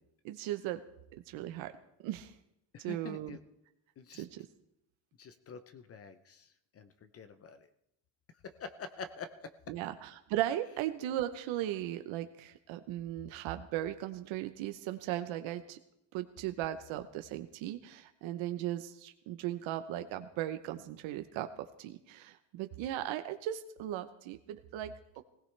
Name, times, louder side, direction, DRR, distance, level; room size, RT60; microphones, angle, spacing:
voice 1, 0.2-0.8 1.3-1.7 2.0-2.4 2.8-3.4 4.2-4.4 9.7-15.8 16.1-25.2, right 13 dB, 75° right, 8 dB, 0.9 m, -37 dB
voice 2, 2.7-3.4 4.0-4.2 5.2-7.7 8.4-9.5, left 5 dB, 30° left, 11 dB, 0.5 m, -46 dB
19.0 x 17.0 x 3.3 m, 0.81 s
cardioid pair, 170°, 47 cm